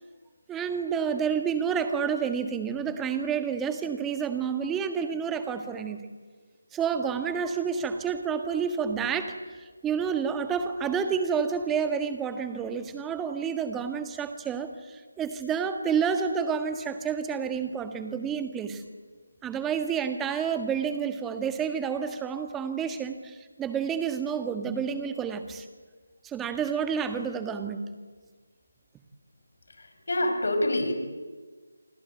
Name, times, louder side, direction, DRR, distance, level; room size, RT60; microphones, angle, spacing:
voice 1, 0.5-6.1 6.7-18.8 19.4-25.6 26.2-27.8, right 6 dB, 10° right, 8 dB, 1.6 m, -29 dB
voice 2, 29.7-30.9, left 1 dB, 60° left, 6 dB, 6.4 m, -27 dB
28.5 x 24.5 x 8.2 m, 1.4 s
figure-of-eight pair, 160°, 0 cm